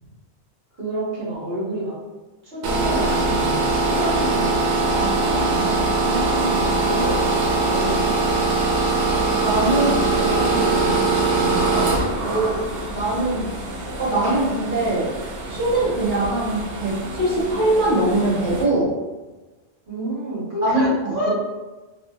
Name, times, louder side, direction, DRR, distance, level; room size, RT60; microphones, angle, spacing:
voice 1, 0.8-1.9 2.4-4.9 6.6-8.1 9.7-11.1 19.9-21.3, right 1 dB, 60° right, -9 dB, 1.2 m, -28 dB
sound 1, 2.6-18.6, right 3 dB, 80° right, 0.9 m, -22 dB
voice 2, 4.9-6.7 9.1-10.0 11.4-11.6 12.2-13.5 14.0-15.1 15.5-18.9 20.6-21.3, right 2 dB, 15° left, -11 dB, 0.6 m, -23 dB
2.7 x 2.2 x 2.2 m, 1.2 s
omnidirectional pair, 1.1 m